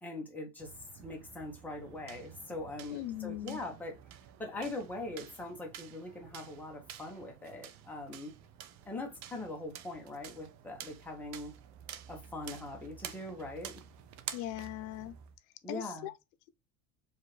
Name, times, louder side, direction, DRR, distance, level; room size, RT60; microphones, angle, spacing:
voice 1, 0.0-3.9 4.4-8.3 8.8-11.5 12.1-13.7 15.6-16.1, left 2 dB, 5° left, 0.8 m, -42 dB
sound 1, 0.6-15.4, right 10 dB, 45° right, 0.5 m, -50 dB
voice 2, 2.9-3.6 14.3-15.1 15.7-16.1, left 13 dB, 85° left, 0.6 m, -39 dB
4.8 x 2.5 x 3.1 m
cardioid pair, 180°, 39 cm